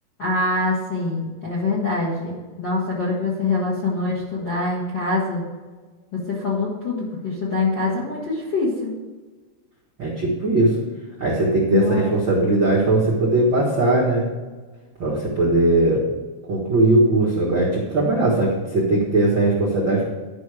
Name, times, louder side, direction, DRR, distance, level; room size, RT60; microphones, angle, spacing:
voice 1, 0.2-5.4 6.1-9.0 11.7-12.1, left 3 dB, 50° left, -5 dB, 1.3 m, -24 dB
voice 2, 10.0-10.7 11.2-14.3 15.0-16.0 16.5-20.1, right 2 dB, 55° right, -6 dB, 1.3 m, -19 dB
11.5 x 5.5 x 4.8 m, 1.3 s
omnidirectional pair, 4.6 m